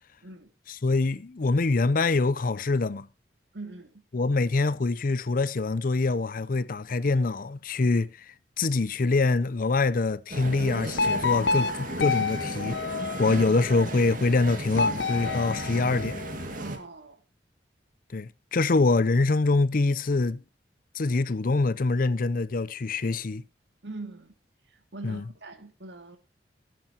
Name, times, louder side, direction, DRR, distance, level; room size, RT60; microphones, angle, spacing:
voice 1, 0.8-3.1 4.1-12.8 13.2-16.2 18.1-20.4 20.9-23.4 25.0-25.2, left 3 dB, 50° left, 0.5 m, -25 dB
voice 2, 3.5-4.0 16.6-17.2 23.8-24.3 24.7-26.2, right 2 dB, 85° right, 2.3 m, -42 dB
sound 1, 10.3-16.8, right 2 dB, 50° right, 2.1 m, -35 dB
sound 2, 11.0-13.6 14.7-16.5, left 4 dB, 75° left, 0.9 m, -29 dB
18.0 x 9.3 x 2.9 m
head